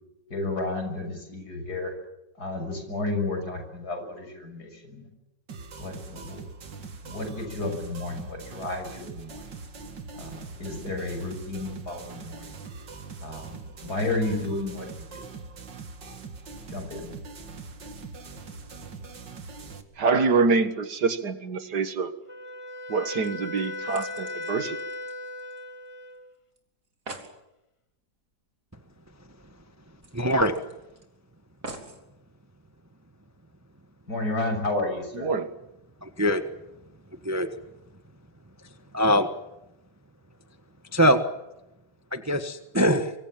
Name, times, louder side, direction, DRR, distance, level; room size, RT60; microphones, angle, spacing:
voice 1, 0.3-1.9 2.4-5.1 5.8-6.4 6.8-9.4 10.1-12.6 13.2-15.2 16.7-17.1 34.1-35.3, left 2 dB, 60° left, 6 dB, 6.9 m, -32 dB
sound 1, 5.5-19.8, right 4 dB, 90° right, 2.8 m, -42 dB
voice 2, 20.0-22.1 22.9-24.8 35.1-35.5, right 4 dB, 70° right, 10 dB, 2.2 m, -25 dB
Wind instrument woodwind instrument, 22.3-26.3, left 2 dB, 20° left, 1.0 m, -37 dB
sound 2, 22.9-23.0 23.2-25.9 26.1-26.2 26.6-26.7 26.8-27.4 28.9-29.0 29.3-29.4 30.0-31.0 31.6-32.0 32.8-32.9, right 2 dB, 50° right, 3.7 m, -44 dB
voice 3, 30.1-30.6 36.0-36.4 37.2-37.5 38.9-39.3 40.9-41.2 42.1-43.1, equal, 10° right, 8 dB, 1.2 m, -22 dB
25.0 x 24.5 x 7.4 m, 0.91 s
omnidirectional pair, 1.9 m